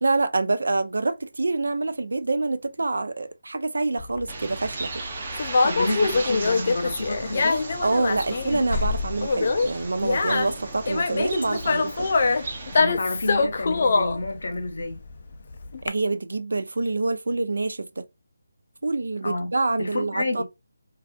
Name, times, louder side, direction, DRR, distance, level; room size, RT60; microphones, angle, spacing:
voice 1, 0.0-5.0 7.8-12.1 15.8-18.0 18.8-20.4, right 3 dB, 80° right, 0.4 m, -26 dB
Conversation, 4.0-15.9, left 4 dB, 40° left, 0.3 m, -24 dB
Bird, 4.3-12.8, right 3 dB, 30° right, 0.6 m, -36 dB
voice 2, 5.6-7.7 12.7-15.0 19.2-19.5 19.8-20.4, left 2 dB, 70° left, 0.8 m, -29 dB
2.5 x 2.3 x 2.3 m
figure-of-eight pair, 170°, 0 cm